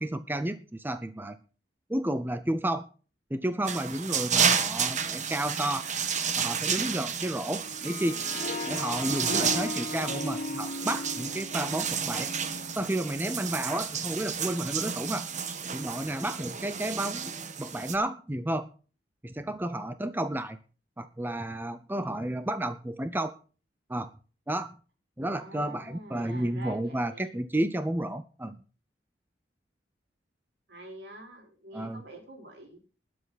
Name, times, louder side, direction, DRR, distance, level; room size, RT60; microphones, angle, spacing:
voice 1, 0.0-1.4 1.9-2.8 3.3-5.9 6.4-8.2 8.7-12.3 12.8-15.3 15.7-17.3 17.6-18.7 19.2-20.6 21.0-23.4 23.9-24.1 24.5-24.8 25.2-28.6 31.7-32.0, right 1 dB, 10° right, 11 dB, 0.6 m, -31 dB
sound 1, 3.6-18.0, right 7 dB, 45° right, 1.3 m, -31 dB
Harp, 7.6-12.9, left 3 dB, 50° left, 2.9 m, -37 dB
voice 2, 25.3-27.3 30.7-32.8, right 2 dB, 65° right, 1 dB, 4.9 m, -46 dB
20.5 x 7.6 x 4.1 m, 0.37 s
head